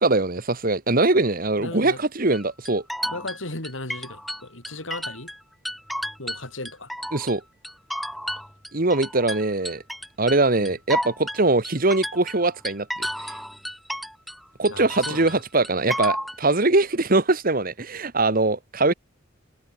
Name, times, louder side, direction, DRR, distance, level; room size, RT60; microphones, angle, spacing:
voice 1, 0.0-2.8 7.1-7.4 8.7-9.8 10.2-13.3 14.6-18.9, right 2 dB, 45° right, 1.6 m, -22 dB
voice 2, 1.6-2.0 3.1-5.3 6.2-6.9 10.6-10.7 14.7-15.4, left 2 dB, 85° left, 6.9 m, -36 dB
sound 1, 2.3-5.4 5.7-7.4 7.6-14.4 14.7-16.4, equal, ahead, 0.9 m, -32 dB
head